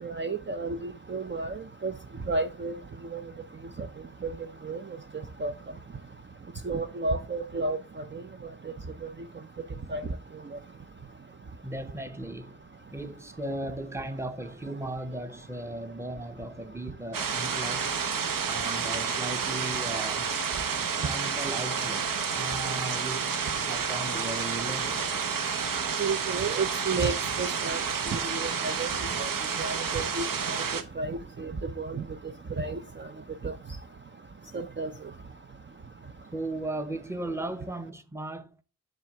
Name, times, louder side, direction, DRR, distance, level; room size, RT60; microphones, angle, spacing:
voice 1, 0.0-1.9 2.3-2.8 3.1-3.2 4.2-4.3 4.6-4.8 5.4-5.5 6.6-7.8 8.1-8.2 9.9-10.0 26.0-27.8 28.1-28.9 29.2-29.3 29.6-30.6 31.0-31.5 31.8-32.0 32.6-33.1 33.4-33.5 34.5-34.9, right 3 dB, 30° right, 0.6 m, -31 dB
voice 2, 11.6-12.6 12.9-18.0 18.4-20.3 21.0-25.2 36.3-38.6, right 1 dB, 5° right, 0.8 m, -37 dB
sound 1, 17.1-30.8, right 6 dB, 65° right, 0.9 m, -30 dB
7.5 x 3.4 x 5.9 m
wide cardioid pair, 85°, 36 cm